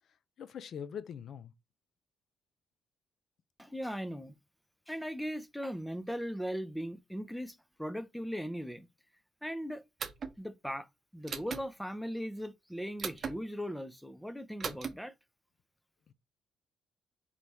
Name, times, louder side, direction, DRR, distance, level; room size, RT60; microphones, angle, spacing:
voice 1, 0.4-1.5 16.1-16.2, left 8 dB, 65° left, 0.5 m, -42 dB
voice 2, 3.6-4.3 4.9-8.9 9.4-9.8 10.4-10.9 11.1-15.1, equal, 5° left, 0.5 m, -38 dB
sound 1, 10.0-10.3 11.3-11.6 13.0-13.3 14.6-14.9, right 5 dB, 45° right, 0.8 m, -37 dB
4.1 x 3.0 x 3.4 m
cardioid pair, 90°, 0 cm